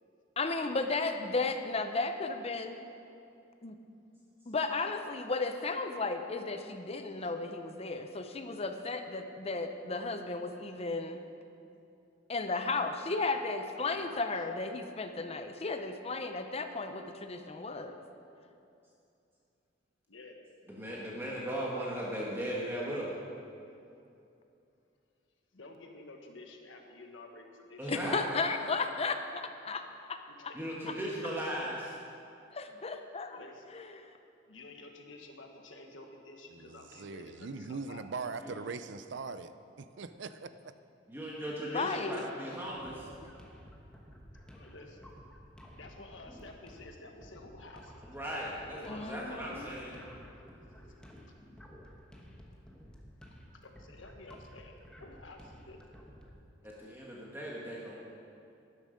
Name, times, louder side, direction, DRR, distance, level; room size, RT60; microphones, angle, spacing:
voice 1, 0.4-2.8 3.6-3.7 4.5-11.2 12.3-18.0 27.9-29.8 30.1-30.2 30.9-31.0 32.5-33.4 33.7-34.1 41.7-42.2 48.9-49.7, left 3 dB, 35° left, 7 dB, 0.8 m, -34 dB
voice 2, 13.8-14.3 20.1-20.4 22.4-22.6 25.5-27.9 30.3-30.8 33.1-33.7 34.4-38.1 41.6-42.0 44.5-45.1 45.7-48.2 48.7-49.1 53.6-55.8, left 2 dB, 85° left, 3 dB, 1.4 m, -51 dB
voice 3, 20.7-23.1 27.8-28.7 30.5-31.9 38.4-38.5 41.1-43.1 48.0-50.0 56.6-58.0, equal, 10° right, -5 dB, 1.5 m, -37 dB
voice 4, 36.5-39.5 39.8-40.7, right 4 dB, 65° right, 12 dB, 0.5 m, -41 dB
sound 1, 42.6-56.4, equal, 5° left, 1.2 m, -53 dB
12.5 x 10.5 x 5.2 m, 2.7 s
head